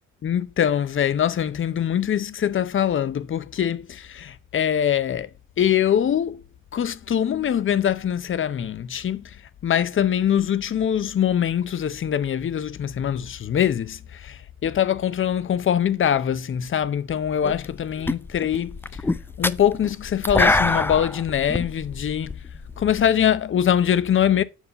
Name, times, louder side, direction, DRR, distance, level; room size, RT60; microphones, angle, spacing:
voice 1, 0.2-5.3 5.6-6.4 6.7-9.4 9.6-18.8 19.4-22.3 22.8-24.4, left 9 dB, 40° left, 0.7 m, -23 dB
sound 1, 17.4-17.8 18.1-23.0, left 2 dB, 10° left, 0.4 m, -24 dB
7.4 x 5.4 x 4.1 m
cardioid pair, 90°, 30 cm